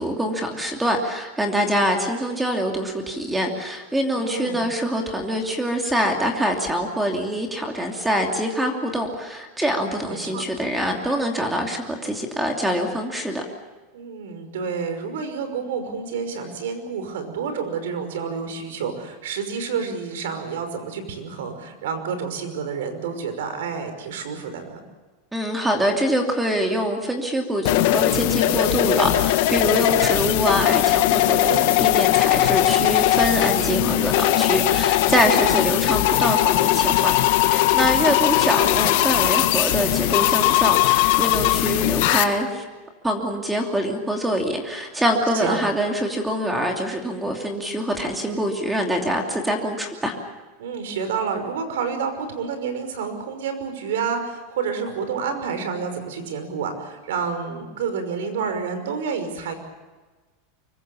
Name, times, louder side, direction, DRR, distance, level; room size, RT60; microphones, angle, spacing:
voice 1, 0.0-13.4 25.3-42.6 43.0-50.1, equal, 5° right, 2 dB, 2.8 m, -24 dB
voice 2, 4.2-4.7 10.0-10.4 13.9-24.8 31.3-31.7 35.4-35.7 45.3-45.6 50.6-59.5, right 6 dB, 85° right, 8 dB, 5.7 m, -29 dB
sound 1, 27.6-42.2, left 15 dB, 60° left, 1.7 m, -19 dB
25.0 x 23.5 x 7.2 m, 1.3 s
supercardioid pair, 155°, 0 cm